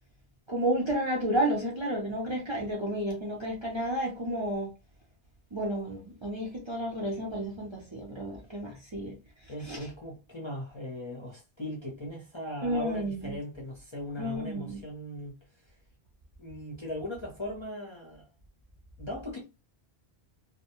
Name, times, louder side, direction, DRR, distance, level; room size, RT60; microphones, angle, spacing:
voice 1, 0.5-4.7 5.5-9.2 9.6-9.8 12.6-13.4 14.2-14.8, right 1 dB, 35° right, 0.5 m, -31 dB
voice 2, 9.5-15.3 16.4-18.3 19.0-19.4, left 1 dB, 35° left, 0.5 m, -39 dB
2.2 x 2.1 x 2.8 m
omnidirectional pair, 1.1 m